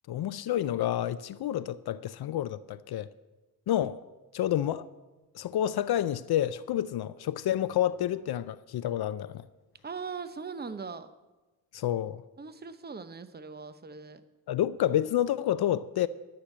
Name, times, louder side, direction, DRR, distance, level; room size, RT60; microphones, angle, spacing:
voice 1, 0.1-3.1 3.7-4.0 4.3-4.9 5.3-9.4 11.7-12.2 14.5-16.1, left 11 dB, 75° left, 0.5 m, -29 dB
voice 2, 9.8-11.1 12.4-14.2, right 5 dB, 25° right, 0.8 m, -40 dB
13.0 x 6.5 x 8.6 m
cardioid pair, 85°, 39 cm